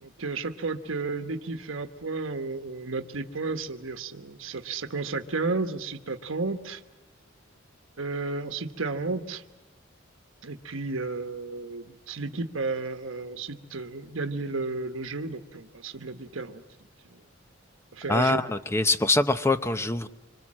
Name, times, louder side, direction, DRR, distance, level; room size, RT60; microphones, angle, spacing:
voice 1, 0.0-6.8 8.0-9.4 10.4-16.6 17.9-18.4, right 3 dB, 85° right, 7 dB, 1.2 m, -32 dB
voice 2, 18.1-20.1, left 2 dB, 15° left, 10 dB, 0.8 m, -24 dB
26.0 x 25.5 x 7.6 m, 1.0 s
head